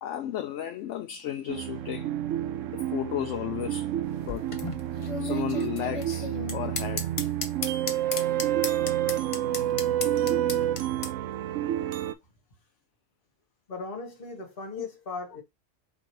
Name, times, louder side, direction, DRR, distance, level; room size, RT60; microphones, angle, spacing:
voice 1, 0.0-2.1 2.9-3.9 4.3-4.5 5.2-7.1 14.8-14.9, left 11 dB, 75° left, 0.9 m, -33 dB
sound 1, 1.5-12.1, right 12 dB, 90° right, 1.0 m, -29 dB
sound 2, 4.0-11.1, left 4 dB, 35° left, 0.7 m, -35 dB
voice 2, 13.7-15.4, left 3 dB, 50° left, 1.4 m, -38 dB
4.0 x 2.8 x 4.5 m
omnidirectional pair, 1.3 m